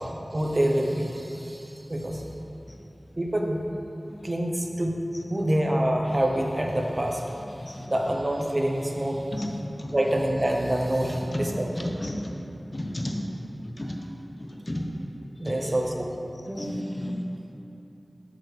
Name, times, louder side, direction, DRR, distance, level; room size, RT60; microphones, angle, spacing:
voice 1, 0.0-2.2 3.2-3.6 4.2-5.0 5.3-7.3 7.6-9.3 9.9-11.9 15.4-16.1 16.5-17.1, right 1 dB, 40° right, 1 dB, 0.8 m, -27 dB
voice 2, 11.1-11.5 11.8-12.2 12.7-13.1 13.8-13.9 14.7-14.8 16.6-17.2, left 1 dB, 40° left, 1 dB, 0.9 m, -32 dB
8.5 x 6.2 x 3.3 m, 3.0 s
wide cardioid pair, 45°, 0 cm